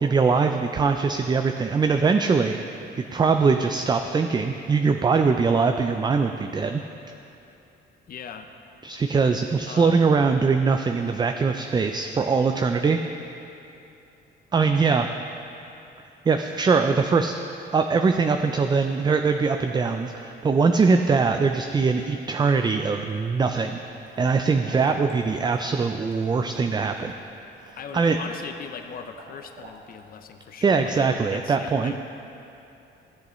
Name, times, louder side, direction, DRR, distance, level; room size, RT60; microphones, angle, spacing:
voice 1, 0.0-2.6 3.0-6.8 8.8-13.0 14.5-15.1 16.3-17.4 17.7-23.8 24.2-27.1 27.9-28.2 30.6-31.9, right 4 dB, 20° right, 6 dB, 0.4 m, -22 dB
voice 2, 8.1-8.5 9.7-10.1 24.8-25.0 27.8-32.0, left 6 dB, 50° left, 7 dB, 0.6 m, -40 dB
sound 1, 22.3-23.1 23.5-30.2, right 2 dB, 75° right, 1.4 m, -48 dB
13.5 x 7.7 x 3.1 m, 2.8 s
cardioid pair, 90°, 20 cm